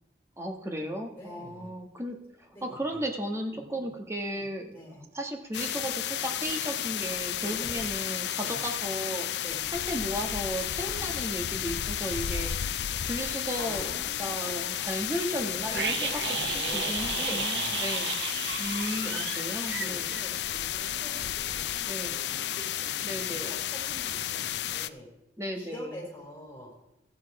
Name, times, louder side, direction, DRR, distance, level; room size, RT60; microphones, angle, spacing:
voice 1, 0.4-4.8 5.1-9.3 9.7-13.9 14.2-16.0 16.5-18.2 18.6-20.1 21.8-22.2 23.0-23.5 25.4-26.0, equal, 15° right, 3 dB, 1.3 m, -35 dB
voice 2, 1.1-1.8 2.5-3.0 3.3-3.9 4.3-4.5 4.7-5.0 7.4-7.9 8.4-8.7 9.4-9.6 10.9-11.3 13.6-14.3 15.7-17.9 18.9-19.1 19.8-25.1 25.5-26.7, equal, 15° left, -2 dB, 3.6 m, -45 dB
sound 1, 5.5-24.9, left 11 dB, 75° left, 0.4 m, -32 dB
sound 2, 15.7-20.6 20.8-20.9, right 7 dB, 80° right, 0.8 m, -34 dB
14.0 x 8.7 x 4.7 m, 0.88 s
head